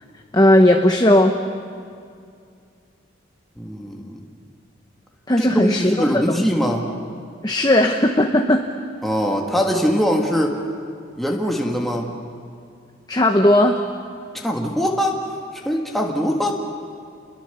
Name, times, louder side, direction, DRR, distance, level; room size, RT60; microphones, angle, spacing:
voice 1, 0.3-1.4 5.3-6.5 7.4-8.7 13.1-13.8, left 1 dB, 20° left, 4 dB, 0.9 m, -16 dB
voice 2, 3.6-4.2 5.4-6.8 9.0-10.6 11.2-12.1 14.3-15.2 15.7-16.6, equal, ahead, 0 dB, 1.8 m, -22 dB
29.5 x 22.0 x 6.9 m, 2.3 s
head